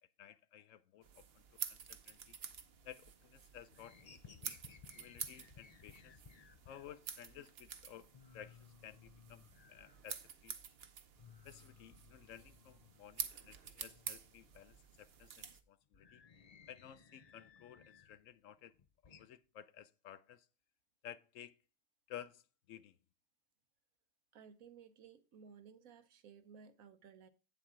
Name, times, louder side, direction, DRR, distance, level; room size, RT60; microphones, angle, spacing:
voice 1, 0.2-2.4 2.8-4.6 5.0-6.2 6.7-10.5 11.4-16.2 16.7-18.7 19.0-20.5 21.0-21.6 22.1-23.0, left 10 dB, 75° left, 1.0 m, -55 dB
sound 1, 1.0-15.6, right 7 dB, 55° right, 0.9 m, -49 dB
sound 2, 2.5-3.2 3.5-7.0 7.4-7.5 7.8-7.9 8.1-10.6 10.9-13.5 13.8-18.2 18.6-19.3, left 6 dB, 40° left, 0.6 m, -61 dB
voice 2, 24.3-27.3, right 6 dB, 85° right, 1.3 m, -58 dB
8.8 x 7.3 x 3.7 m
omnidirectional pair, 1.4 m